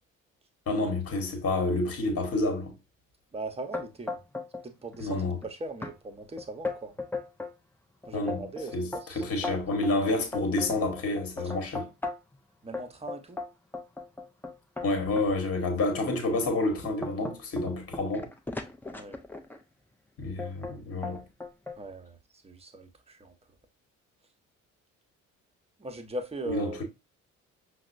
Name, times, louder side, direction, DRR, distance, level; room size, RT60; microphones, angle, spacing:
voice 1, 0.7-2.7 5.0-5.4 8.1-8.5 8.7-11.9 14.8-18.3 20.2-21.2 26.5-26.8, left 2 dB, 35° left, 1.1 m, -29 dB
voice 2, 3.3-4.2 4.6-7.0 8.0-9.2 11.4-11.6 12.6-13.4 18.9-19.2 21.8-23.3 25.8-26.8, right 2 dB, 15° right, 0.8 m, -40 dB
sound 1, 3.7-4.7 4.9-5.5 5.8-5.9 6.4-7.6 8.0-12.4 12.7-15.3 15.9-16.0 16.5-19.6 20.4-20.8 21.0-21.8, left 3 dB, 5° left, 0.4 m, -37 dB
5.8 x 2.0 x 2.5 m
figure-of-eight pair, 50°, 39 cm